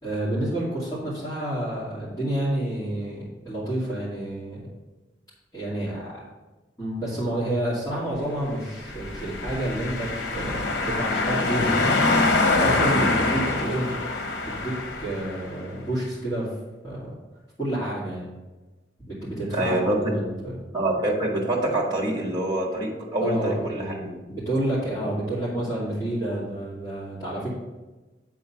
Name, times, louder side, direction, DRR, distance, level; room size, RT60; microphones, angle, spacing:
voice 1, 0.0-4.7 5.5-6.2 6.8-12.0 12.6-13.9 14.5-16.5 16.8-17.1 17.6-18.3 19.1-20.3 23.2-27.5, right 1 dB, 20° left, -12 dB, 2.5 m, -29 dB
sound 1, 8.8-15.5, left 2 dB, 90° left, 0.9 m, -24 dB
voice 2, 19.5-20.1 20.7-24.1, right 1 dB, 25° right, -1 dB, 1.7 m, -26 dB
9.1 x 3.8 x 5.7 m, 1.2 s
head